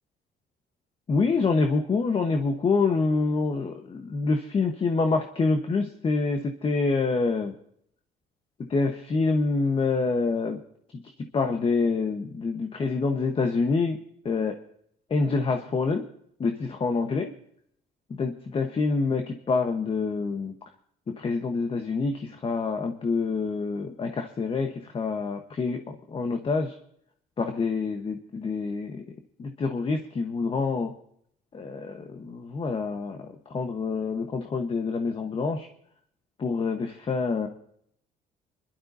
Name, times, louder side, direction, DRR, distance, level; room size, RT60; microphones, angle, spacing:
voice 1, 1.1-7.5 8.6-10.6 10.9-14.6 15.1-16.1 16.4-17.3 18.1-20.5 21.1-26.8 27.4-30.9 31.5-35.7 36.4-37.5, left 4 dB, 30° left, 5 dB, 1.1 m, -27 dB
26.0 x 12.0 x 2.7 m, 0.70 s
cardioid pair, 110°, 17 cm